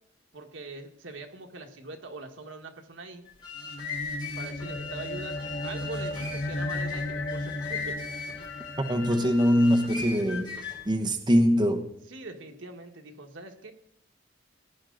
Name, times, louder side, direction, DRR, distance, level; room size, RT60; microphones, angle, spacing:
voice 1, 0.3-3.3 4.4-8.0 12.1-13.7, right 3 dB, 80° right, 4 dB, 1.6 m, -42 dB
sound 1, 3.3-10.9, left 4 dB, 25° left, 4.4 m, -38 dB
sound 2, 3.6-10.3, left 2 dB, 55° left, 1.4 m, -36 dB
voice 2, 8.9-10.5 10.9-11.9, equal, 25° right, 3 dB, 0.9 m, -23 dB
17.0 x 10.5 x 3.9 m, 0.72 s
head